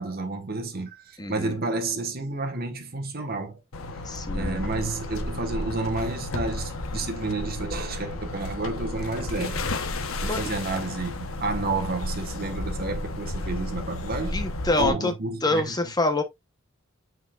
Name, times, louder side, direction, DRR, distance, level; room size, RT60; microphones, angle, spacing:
voice 1, 0.0-3.6 4.3-9.6 10.0-14.4 14.8-15.9, right 3 dB, 50° right, 1.3 m, -30 dB
voice 2, 1.2-1.6 4.1-4.6 10.3-10.4 14.3-15.1 15.4-16.2, left 2 dB, 20° left, 0.9 m, -26 dB
sound 1, 3.7-14.9, left 2 dB, 80° left, 1.0 m, -32 dB
8.2 x 4.7 x 2.4 m
head